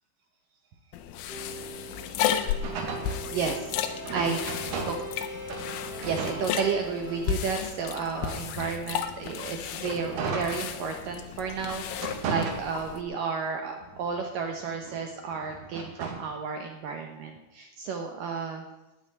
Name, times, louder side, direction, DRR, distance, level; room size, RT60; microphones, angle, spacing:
sound 1, 0.9-13.0, left 9 dB, 90° left, 3.6 m, -34 dB
sound 2, 1.3-7.4, equal, ahead, 2.6 m, -41 dB
sound 3, 2.6-5.2 5.5-7.1 7.7-11.2 11.6-13.2 13.7-16.3, right 4 dB, 60° right, 3.7 m, -37 dB
voice 1, 3.3-3.7 4.1-4.4 4.9-5.0 6.0-18.7, right 5 dB, 80° right, 4 dB, 1.9 m, -32 dB
12.5 x 10.0 x 9.7 m, 1.0 s
omnidirectional pair, 5.6 m